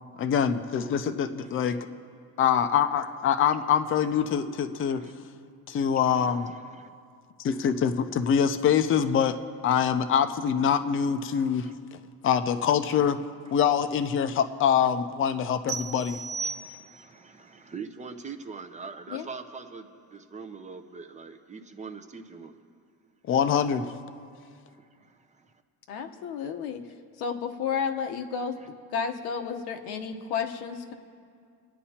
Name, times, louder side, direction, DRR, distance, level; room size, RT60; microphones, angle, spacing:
voice 1, 0.2-1.8 2.4-5.0 5.7-6.5 7.4-9.4 9.6-13.2 13.5-16.2 23.3-23.9, left 8 dB, 35° left, 9 dB, 0.5 m, -24 dB
voice 2, 1.4-1.8 4.9-5.1 6.1-6.9 11.7-11.8 14.3-14.4 16.1-16.2 16.4-22.6 24.7-25.5 28.6-28.7, right 5 dB, 20° right, 6 dB, 0.6 m, -43 dB
sound 1, 15.7-17.2, right 5 dB, 50° right, 1.2 m, -35 dB
voice 3, 25.9-26.8 27.2-28.6 28.9-30.9, left 6 dB, 90° left, 5 dB, 1.1 m, -32 dB
28.0 x 9.8 x 2.9 m, 2.2 s
cardioid pair, 150°, 38 cm